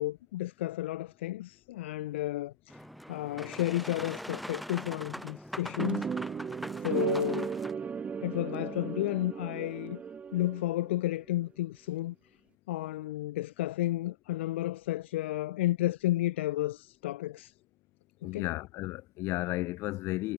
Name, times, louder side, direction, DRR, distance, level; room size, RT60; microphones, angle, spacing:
voice 1, 0.0-2.8 3.1-6.1 6.8-7.6 8.2-10.0 10.3-12.1 12.7-17.5 18.2-18.5, left 16 dB, 55° left, 3.2 m, -32 dB
Boat Water vehicle, 2.7-7.7, equal, ahead, 6.0 m, -42 dB
sound 1, 5.8-10.9, right 6 dB, 15° right, 3.1 m, -35 dB
voice 2, 18.2-20.3, left 19 dB, 35° left, 5.7 m, -33 dB
hypercardioid pair, 110°, 7 cm